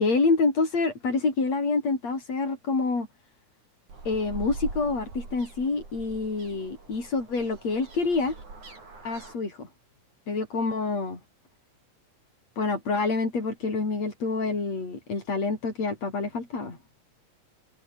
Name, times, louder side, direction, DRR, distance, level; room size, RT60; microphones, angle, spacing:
voice 1, 0.0-3.1 4.1-8.4 9.0-9.7 10.3-11.2 12.6-16.8, left 3 dB, 60° left, 7.3 m, -27 dB
sound 1, 3.9-9.3, right 3 dB, 80° right, 9.2 m, -42 dB
open air
omnidirectional pair, 3.4 m